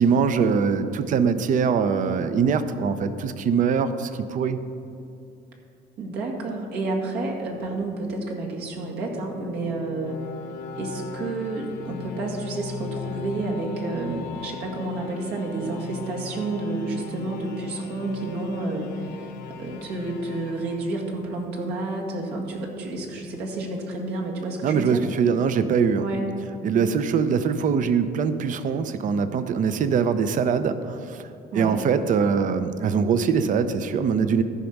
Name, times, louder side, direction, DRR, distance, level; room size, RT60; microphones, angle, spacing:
voice 1, 0.0-4.6 24.6-26.0 26.6-31.3 31.5-34.4, right 6 dB, 50° right, 11 dB, 0.6 m, -22 dB
voice 2, 6.0-10.2 10.8-19.3 19.6-25.0 26.0-26.3 31.5-31.8, right 2 dB, 75° right, -1 dB, 2.0 m, -30 dB
sound 1, 8.6-21.6, left 5 dB, 80° left, 1.0 m, -39 dB
13.5 x 5.3 x 6.0 m, 2.7 s
cardioid pair, 110°, 17 cm